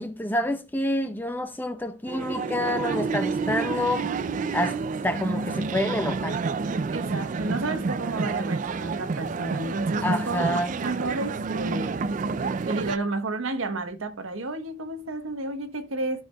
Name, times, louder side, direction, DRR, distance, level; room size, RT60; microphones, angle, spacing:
voice 1, 0.0-4.1 4.5-4.8 5.0-6.4 10.0-10.7, left 1 dB, 10° left, 0.6 m, -28 dB
sound 1, 2.1-13.0, right 4 dB, 40° right, 0.3 m, -29 dB
voice 2, 6.9-12.1 12.7-16.2, right 2 dB, 75° right, 1.0 m, -31 dB
14.5 x 4.9 x 2.2 m
head